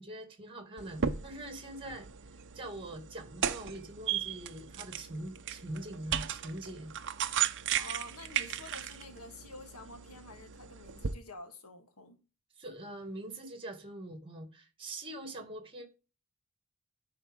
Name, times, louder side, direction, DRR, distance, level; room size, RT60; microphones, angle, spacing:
voice 1, 0.0-2.1 2.5-6.9 12.6-15.8, right 1 dB, 25° right, 2.1 m, -43 dB
sound 1, 0.8-11.1, right 9 dB, 55° right, 0.7 m, -36 dB
voice 2, 7.7-12.2, left 1 dB, 85° left, 1.7 m, -48 dB
10.5 x 4.8 x 3.6 m
head